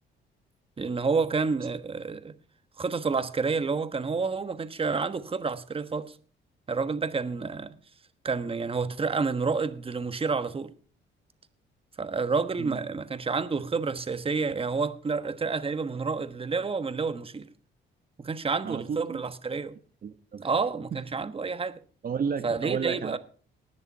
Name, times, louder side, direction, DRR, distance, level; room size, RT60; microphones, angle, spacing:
voice 1, 0.8-2.3 2.8-6.1 6.7-7.7 8.2-10.7 12.0-17.5 18.2-19.8 20.4-21.8 22.4-23.2, right 4 dB, 30° right, 1.3 m, -29 dB
voice 2, 18.6-19.2 20.0-20.5 22.0-23.2, right 6 dB, 45° right, 1.1 m, -32 dB
19.5 x 6.9 x 5.5 m
cardioid pair, 90°, 20 cm